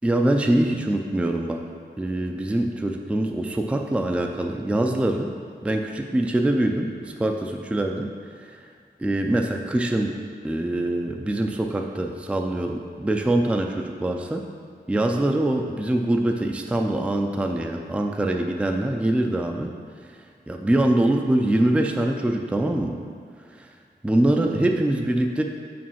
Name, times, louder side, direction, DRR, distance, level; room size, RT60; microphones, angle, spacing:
voice 1, 0.0-1.6 2.0-5.3 5.6-8.1 8.4-8.5 9.0-10.1 10.4-14.4 14.9-19.7 20.5-23.0 24.0-25.4, right 1 dB, 5° right, 3 dB, 0.4 m, -23 dB
5.4 x 5.1 x 5.6 m, 2.2 s
wide cardioid pair, 140°, 18 cm